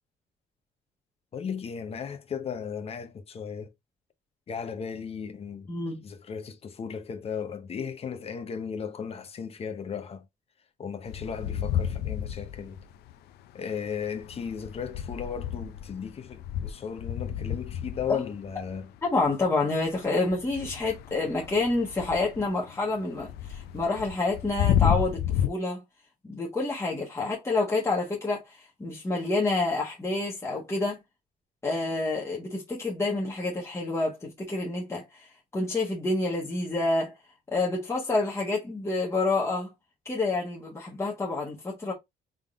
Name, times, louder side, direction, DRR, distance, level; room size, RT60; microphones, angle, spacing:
voice 1, 1.3-3.7 4.5-5.7 6.0-10.3 10.8-12.8 13.5-18.9, left 7 dB, 35° left, 0.8 m, -36 dB
voice 2, 5.7-6.0 18.1-18.2 19.0-25.8 26.2-31.0 31.6-37.2 37.5-39.7 40.0-41.9, left 2 dB, 15° left, 1.1 m, -28 dB
sound 1, 11.0-13.1 13.8-19.5 19.9-25.5, left 10 dB, 75° left, 0.4 m, -31 dB
3.6 x 3.6 x 2.4 m
cardioid pair, 110°, 17 cm